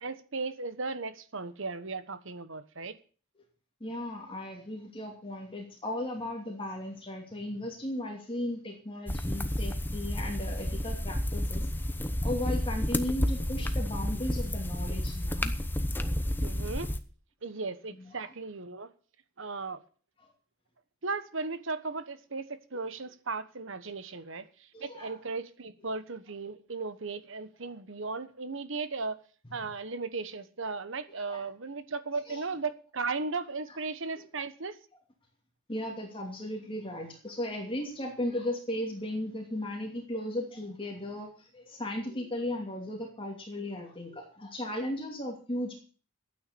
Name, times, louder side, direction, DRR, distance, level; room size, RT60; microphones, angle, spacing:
voice 1, 0.0-3.0 16.4-16.9 17.4-18.9 19.4-19.8 21.0-29.2 29.5-34.8, right 4 dB, 65° right, 1.3 m, -36 dB
voice 2, 3.8-11.7 12.2-15.5 17.9-18.3 20.2-20.3 24.7-25.2 31.3-31.5 32.3-32.4 34.2-34.3 35.7-45.8, left 1 dB, 25° left, 2.7 m, -36 dB
sound 1, 9.1-17.0, left 1 dB, 10° left, 0.9 m, -31 dB
13.0 x 9.4 x 7.0 m
head